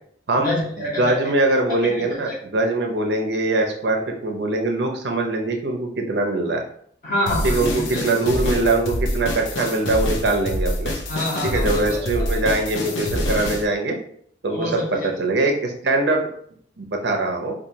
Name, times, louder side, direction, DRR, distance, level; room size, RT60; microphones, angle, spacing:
voice 1, 0.3-1.2 1.9-2.4 7.0-8.0 11.1-12.0 14.5-15.1, left 1 dB, 50° left, -5 dB, 1.4 m, -27 dB
voice 2, 1.0-6.6 7.4-10.9 11.4-13.9 14.4-16.3 16.8-17.5, right 2 dB, 65° right, 2 dB, 0.6 m, -22 dB
sound 1, 7.3-13.6, left 1 dB, 90° left, 0.6 m, -26 dB
4.6 x 2.3 x 2.8 m, 0.63 s
head